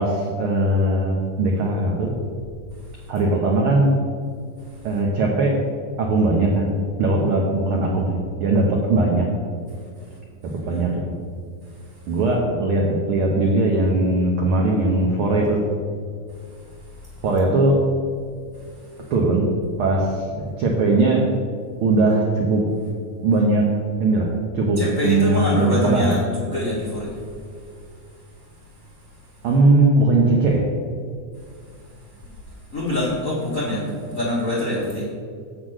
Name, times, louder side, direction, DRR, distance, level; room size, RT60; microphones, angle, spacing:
voice 1, 0.0-2.1 3.1-3.9 4.8-5.5 6.0-9.3 10.7-11.1 12.1-15.6 17.2-17.8 19.1-19.5 19.8-21.2 21.8-22.7 23.2-23.6 24.0-24.3 24.5-26.1 29.4-30.6, right 2 dB, 85° right, -1 dB, 1.2 m, -19 dB
voice 2, 24.8-27.2 32.2-32.3 32.7-35.0, left 1 dB, 45° left, -7 dB, 1.0 m, -25 dB
7.5 x 5.8 x 6.4 m, 2.2 s
omnidirectional pair, 3.7 m